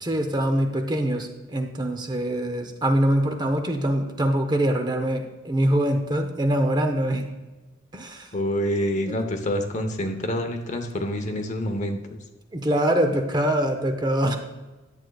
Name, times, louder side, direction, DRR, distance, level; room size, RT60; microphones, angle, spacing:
voice 1, 0.0-7.3 7.9-8.3 12.5-14.4, right 1 dB, 20° right, 5 dB, 0.7 m, -24 dB
voice 2, 8.3-12.2, equal, 40° left, 6 dB, 0.8 m, -27 dB
11.0 x 7.8 x 2.3 m, 1.2 s
head